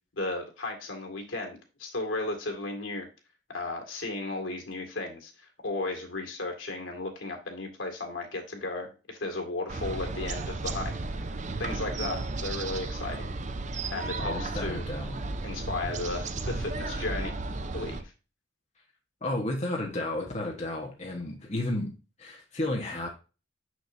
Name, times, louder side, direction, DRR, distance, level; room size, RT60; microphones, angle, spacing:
voice 1, 0.2-3.1 3.5-11.3 11.6-13.3 13.9-14.9 15.4-18.1, left 2 dB, 85° left, 2 dB, 2.1 m, -35 dB
sound 1, 9.7-18.0, right 3 dB, 40° right, 0.6 m, -34 dB
voice 2, 14.2-15.2 19.2-21.9 22.2-23.1, left 1 dB, 35° left, -1 dB, 1.2 m, -32 dB
6.2 x 6.1 x 2.6 m, 0.32 s
head